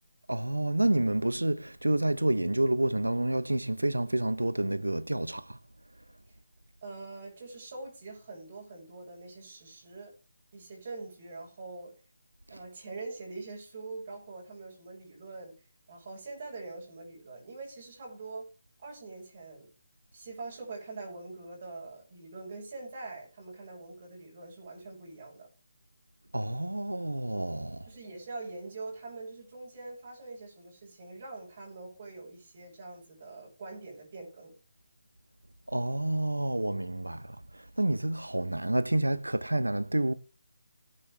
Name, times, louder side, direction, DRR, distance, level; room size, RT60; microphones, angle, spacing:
voice 1, 0.3-5.6 26.3-27.9 35.7-40.1, right 1 dB, 85° right, 0.9 m, -29 dB
voice 2, 6.8-10.1 10.5-12.0 12.5-15.5 15.9-18.5 18.8-19.7 20.1-25.5 27.9-34.6, right 3 dB, 45° right, 7.2 m, -44 dB
16.5 x 9.3 x 3.4 m
figure-of-eight pair, 150°, 0 cm